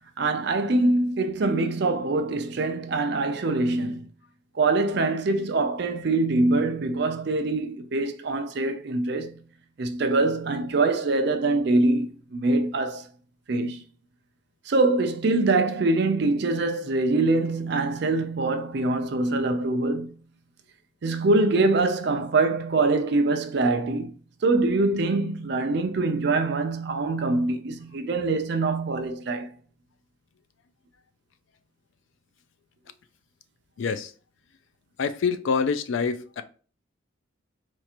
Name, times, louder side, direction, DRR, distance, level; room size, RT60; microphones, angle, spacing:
voice 1, 0.2-4.1 4.5-9.4 9.8-13.1 13.5-13.8 14.7-20.2 21.0-24.1 24.4-29.5, right 2 dB, 55° right, 0.4 m, -24 dB
voice 2, 33.8-34.1 35.0-36.4, left 5 dB, 70° left, 0.4 m, -26 dB
4.4 x 2.4 x 2.8 m
head